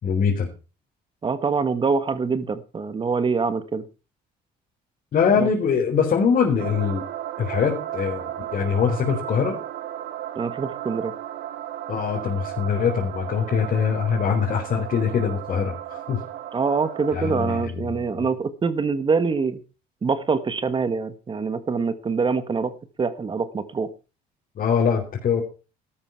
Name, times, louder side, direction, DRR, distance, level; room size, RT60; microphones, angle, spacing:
voice 1, 0.0-0.5 5.1-7.0 7.4-9.6 11.9-16.2 17.1-18.0 24.6-25.4, left 6 dB, 50° left, -1 dB, 4.3 m, -23 dB
voice 2, 1.2-3.8 5.3-5.5 10.3-11.1 16.5-19.6 20.0-22.7 23.0-23.9, right 5 dB, 30° right, 12 dB, 1.4 m, -24 dB
sound 1, 6.6-17.6, right 12 dB, 85° right, 1.7 m, -35 dB
13.5 x 12.0 x 4.5 m, 0.33 s
cardioid pair, 110°, 17 cm